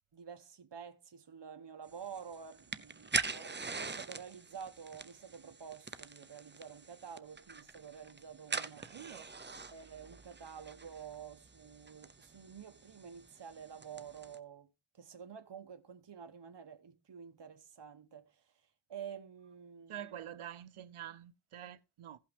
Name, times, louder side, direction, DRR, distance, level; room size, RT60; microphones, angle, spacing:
voice 1, 0.1-8.8 9.7-14.7 14.9-18.4 18.9-20.4, right 7 dB, 60° right, 1.1 m, -49 dB
sound 1, 1.9-14.4, right 4 dB, 20° right, 0.6 m, -43 dB
voice 2, 8.8-9.3 19.9-22.2, right 10 dB, 85° right, 0.7 m, -47 dB
16.0 x 5.6 x 3.4 m
wide cardioid pair, 65°, 49 cm